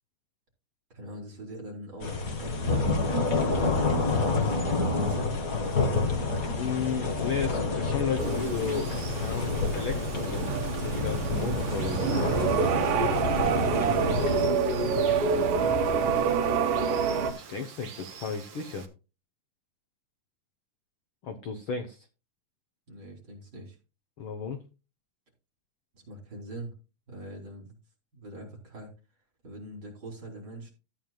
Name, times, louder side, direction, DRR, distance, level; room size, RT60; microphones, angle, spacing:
voice 1, 0.9-4.6 4.9-5.4 13.8-16.1 22.9-23.8 25.9-26.7 27.1-27.8 28.1-28.9 29.4-30.7, right 2 dB, 30° right, -1 dB, 4.0 m, -42 dB
sound 1, 2.0-14.5, left 3 dB, 45° left, 1.1 m, -29 dB
voice 2, 6.6-12.6 17.3-18.9 21.2-22.1 24.2-24.6, left 6 dB, 75° left, 6 dB, 1.2 m, -34 dB
Water, 8.2-18.9, right 7 dB, 60° right, 2.5 m, -47 dB
sound 2, 8.2-17.3, right 5 dB, 80° right, 2.9 m, -27 dB
14.5 x 9.0 x 2.3 m, 0.31 s
omnidirectional pair, 3.7 m